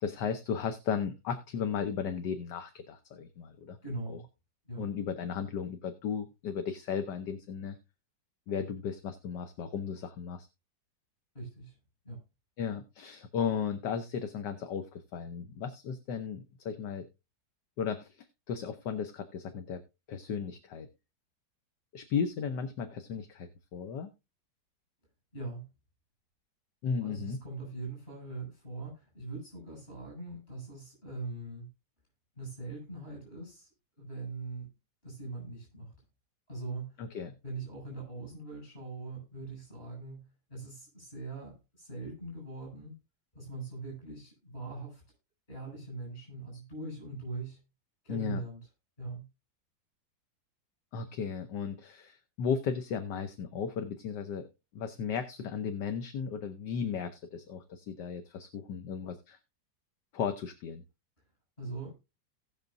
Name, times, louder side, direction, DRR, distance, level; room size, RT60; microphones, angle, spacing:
voice 1, 0.0-3.8 4.1-4.2 4.8-7.8 8.5-10.5 12.6-17.1 17.8-19.8 20.1-20.9 21.9-24.1 26.8-27.4 37.0-37.3 48.1-48.4 50.9-54.5 54.7-59.4 60.1-60.8, left 7 dB, 70° left, 8 dB, 1.5 m, -35 dB
voice 2, 3.8-4.2 4.7-4.8 11.3-11.7 12.0-12.2 25.3-25.7 27.0-31.7 32.4-33.7 34.0-34.7 35.0-35.9 36.5-37.0 37.4-42.9 43.3-45.0 45.5-47.6 48.0-48.6 49.0-49.2 61.6-61.9, right 3 dB, 30° left, -2 dB, 7.8 m, -41 dB
18.5 x 6.2 x 2.6 m, 0.26 s
omnidirectional pair, 2.0 m